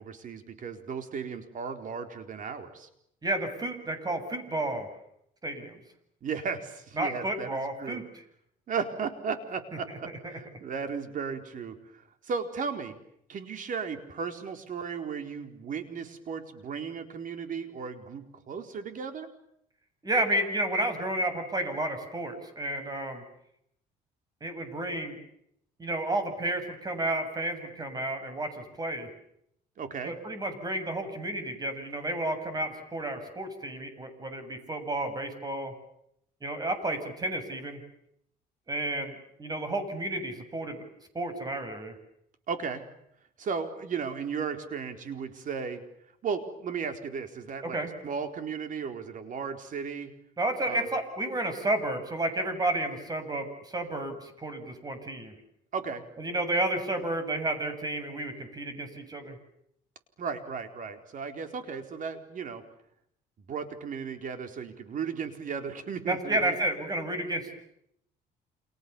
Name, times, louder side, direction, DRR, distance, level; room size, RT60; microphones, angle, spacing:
voice 1, 0.0-2.9 6.2-8.0 8.7-13.0 13.3-19.3 29.8-30.1 42.5-42.8 43.4-45.8 46.2-47.8 48.0-50.1 50.7-50.9 55.7-56.0 60.2-62.6 63.5-66.5, right 6 dB, 50° right, 7 dB, 4.4 m, -35 dB
voice 2, 3.2-4.9 5.4-5.8 7.0-8.1 9.9-10.3 20.0-23.2 24.4-25.2 25.8-29.1 30.0-35.7 36.4-37.8 38.7-40.8 41.1-42.0 47.6-47.9 50.4-55.3 56.2-59.4 66.1-67.6, right 1 dB, 25° right, 9 dB, 7.7 m, -31 dB
29.5 x 28.5 x 7.1 m, 0.74 s
cardioid pair, 110°, 17 cm